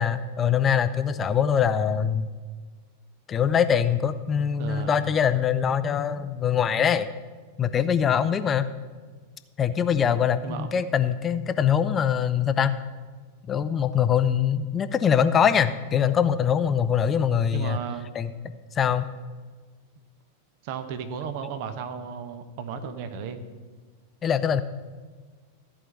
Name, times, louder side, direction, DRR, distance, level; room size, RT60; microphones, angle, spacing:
voice 1, 0.0-2.3 3.3-7.1 7.6-8.7 9.6-12.7 13.5-17.8 18.2-18.3 18.8-19.0 24.2-24.6, left 8 dB, 25° left, 12 dB, 0.5 m, -23 dB
voice 2, 4.6-5.1 10.4-10.7 17.5-18.1 20.6-23.4, right 7 dB, 45° right, 9 dB, 0.9 m, -34 dB
14.0 x 4.9 x 7.0 m, 1.4 s
figure-of-eight pair, 90°, 0 cm